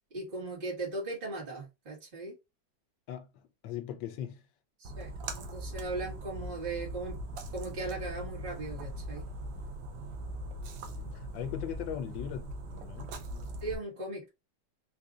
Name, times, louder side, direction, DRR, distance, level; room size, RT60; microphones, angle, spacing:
voice 1, 0.1-2.4 4.8-7.2 7.5-9.3 13.6-14.3, right 2 dB, 30° right, 1.6 m, -38 dB
voice 2, 3.1-4.4 10.8-13.2, left 10 dB, 75° left, 1.3 m, -40 dB
Splash splatter, 4.8-13.7, right 1 dB, 75° right, 1.2 m, -40 dB
3.8 x 2.7 x 2.4 m
omnidirectional pair, 2.1 m